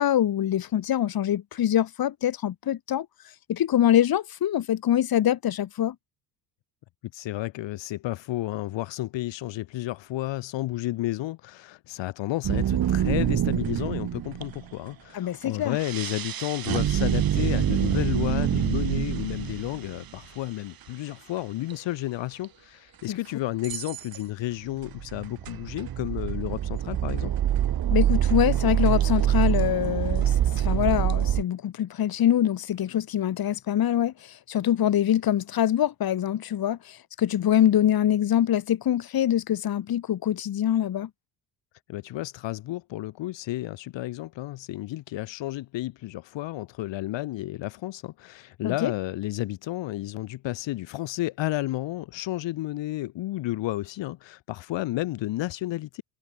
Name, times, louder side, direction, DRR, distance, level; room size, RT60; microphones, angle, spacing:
voice 1, 0.0-3.1 3.5-6.0 15.1-15.8 23.1-23.2 27.9-41.1 48.6-48.9, left 11 dB, 45° left, 2.2 m, -24 dB
voice 2, 7.1-27.3 41.9-56.0, left 16 dB, 60° left, 2.0 m, -32 dB
sound 1, 12.4-14.6 15.7-20.0 21.7-21.8 22.4-22.5 23.6-24.2 24.8-31.4, right 11 dB, 45° right, 1.9 m, -25 dB
supercardioid pair, 75°, 49 cm